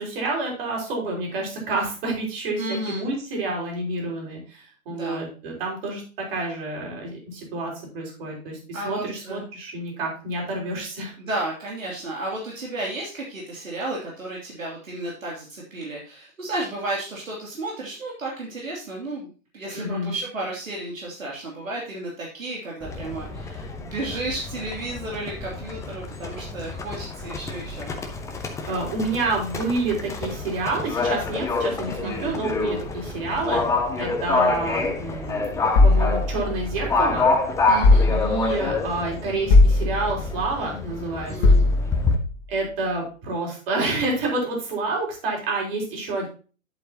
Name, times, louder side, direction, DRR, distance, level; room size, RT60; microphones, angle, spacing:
voice 1, 0.0-11.1 19.7-20.1 28.7-33.6 34.0-37.3 38.0-41.6 42.5-46.3, right 2 dB, 45° right, 0 dB, 5.2 m, -28 dB
voice 2, 2.6-3.1 4.9-5.2 8.7-9.4 11.2-19.3 19.5-27.9 32.0-32.4 37.7-38.1 41.3-41.7, right 2 dB, 70° right, -3 dB, 3.0 m, -33 dB
Livestock farm animals working animals, 22.8-42.2, left 3 dB, 5° left, 0.8 m, -28 dB
sound 1, 35.7-37.1 37.8-38.7 39.5-40.4 41.4-42.2, left 2 dB, 35° left, 2.0 m, -18 dB
11.0 x 7.8 x 2.9 m, 0.36 s
figure-of-eight pair, 115°, 41 cm